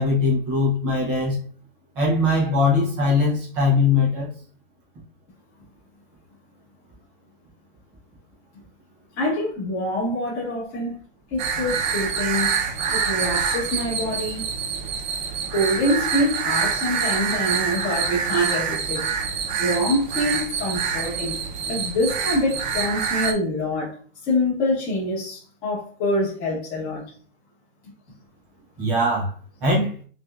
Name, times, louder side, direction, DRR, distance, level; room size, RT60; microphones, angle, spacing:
voice 1, 0.0-1.4 2.0-4.3 28.8-29.3 29.6-29.9, left 3 dB, 5° right, 0.3 m, -21 dB
voice 2, 9.2-11.0 11.3-12.5 12.9-14.5 15.5-21.4 21.7-24.0 24.2-27.0, left 1 dB, 30° left, 1.4 m, -25 dB
sound 1, 11.4-23.3, right 6 dB, 40° right, 0.7 m, -26 dB
5.7 x 2.5 x 2.2 m
hypercardioid pair, 160°, 34 cm